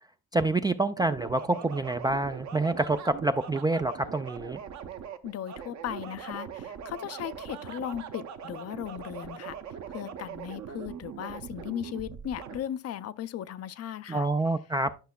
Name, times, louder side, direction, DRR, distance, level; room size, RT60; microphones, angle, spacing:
voice 1, 0.3-4.6 14.1-14.9, right 2 dB, 10° right, 0.3 m, -27 dB
sound 1, 1.0-12.6, right 7 dB, 50° right, 0.9 m, -41 dB
voice 2, 5.2-9.6 9.9-14.3, left 11 dB, 45° left, 0.5 m, -37 dB
10.5 x 5.6 x 2.2 m
supercardioid pair, 65°, 35 cm